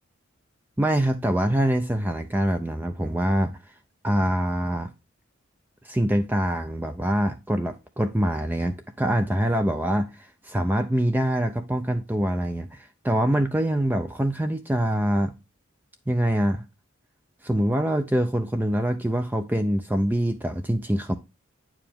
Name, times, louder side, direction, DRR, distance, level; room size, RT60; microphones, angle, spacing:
voice 1, 0.8-3.6 4.0-4.9 5.8-15.3 16.1-16.6 17.4-21.2, right 1 dB, 10° right, 0.5 m, -24 dB
8.9 x 4.9 x 3.6 m
head